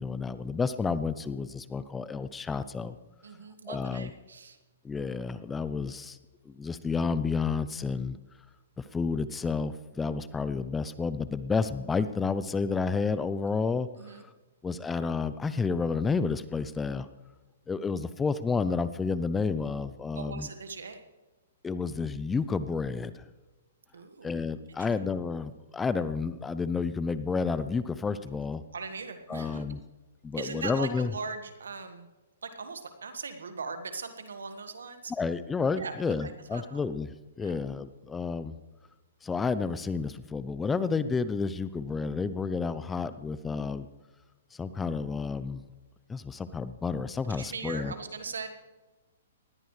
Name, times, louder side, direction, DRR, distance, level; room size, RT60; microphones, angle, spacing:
voice 1, 0.0-3.0 3.7-4.1 4.8-6.2 6.5-8.2 8.8-14.2 14.6-17.1 17.7-20.5 21.6-23.2 24.2-28.6 29.3-29.8 30.2-31.1 35.1-38.6 39.2-43.9 44.5-45.6 46.1-47.9, left 4 dB, 10° left, 14 dB, 0.5 m, -30 dB
voice 2, 3.2-4.6 14.0-14.2 20.1-21.0 23.9-24.3 24.8-24.9 28.7-29.6 30.4-32.1 32.4-35.1 35.8-35.9 36.2-36.8 37.4-37.6 47.3-48.5, right 4 dB, 90° right, 8 dB, 1.6 m, -39 dB
19.5 x 14.0 x 3.3 m, 1.2 s
hypercardioid pair, 140°, 0 cm